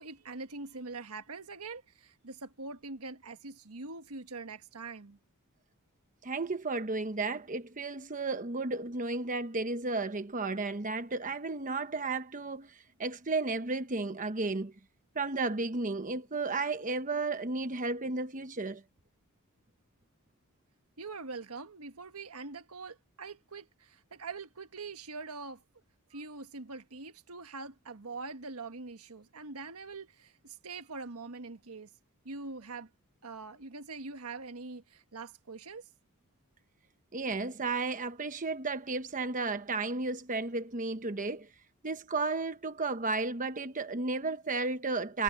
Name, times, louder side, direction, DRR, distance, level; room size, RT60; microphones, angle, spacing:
voice 1, 0.0-5.2 21.0-25.6 26.1-31.9 32.2-32.9 33.2-35.9, right 3 dB, 80° right, 1.4 m, -43 dB
voice 2, 6.2-14.7 15.1-18.8 37.1-41.5 41.8-45.2, right 3 dB, 35° right, 1.0 m, -33 dB
head